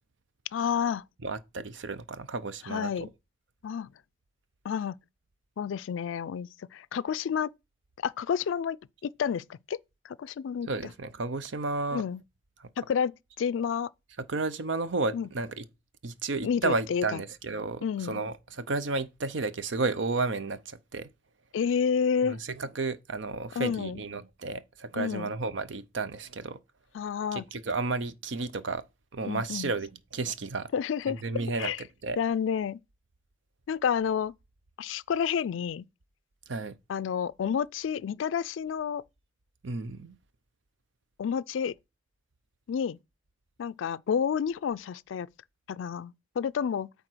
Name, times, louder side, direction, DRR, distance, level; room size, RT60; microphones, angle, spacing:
voice 1, 0.5-1.0 2.6-3.1 3.6-3.9 4.6-5.0 5.6-7.5 8.0-8.8 9.0-9.8 10.0-10.7 11.9-12.2 12.8-13.1 13.4-13.9 15.1-15.3 16.4-17.2 17.8-18.2 21.5-22.4 23.6-24.0 25.0-25.3 26.9-27.4 29.2-29.7 30.7-31.2 31.6-31.8 32.2-32.8 33.7-34.3 34.8-35.8 36.9-39.0 41.2-41.7 42.7-43.0 43.6-45.3 45.7-46.9, left 7 dB, 75° left, 0.3 m, -30 dB
voice 2, 1.2-3.1 10.7-12.0 12.6-12.7 14.2-15.7 16.0-21.1 22.2-26.6 27.3-28.8 29.1-30.7 31.1-31.7 32.0-32.2 36.5-36.8 39.6-40.2, right 3 dB, 70° right, 0.7 m, -32 dB
8.9 x 3.5 x 6.1 m
head